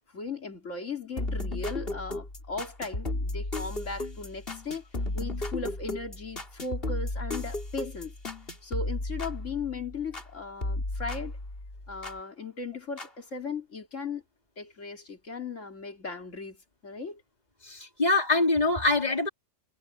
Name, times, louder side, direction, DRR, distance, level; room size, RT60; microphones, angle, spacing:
voice 1, 0.1-4.8 5.1-8.1 8.6-11.4 11.9-14.2 14.6-16.6 16.8-17.2, left 4 dB, 90° left, 3.2 m, -37 dB
sound 1, 1.2-10.3 10.6-12.2 13.0-13.1, left 2 dB, 50° left, 3.9 m, -34 dB
voice 2, 17.6-19.3, left 2 dB, 35° left, 3.8 m, -24 dB
omnidirectional pair, 1.2 m